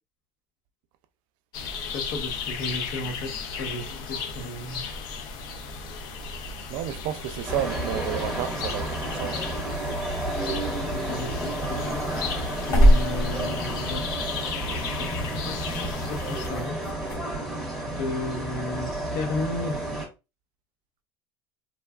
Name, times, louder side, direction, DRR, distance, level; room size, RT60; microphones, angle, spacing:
sound 1, 1.5-16.5, left 5 dB, 55° left, 0.6 m, -35 dB
voice 1, 1.7-4.8 10.9-12.2 12.7-14.0 14.7-15.0 15.4-16.8 17.9-19.8, left 2 dB, 85° left, 0.9 m, -34 dB
voice 2, 6.7-9.4, right 12 dB, 65° right, 0.4 m, -31 dB
sound 2, 7.5-20.1, right 1 dB, ahead, 0.9 m, -31 dB
sound 3, 10.9-17.2, equal, 35° left, 1.0 m, -26 dB
3.1 x 2.2 x 2.3 m
cardioid pair, 160°, 9 cm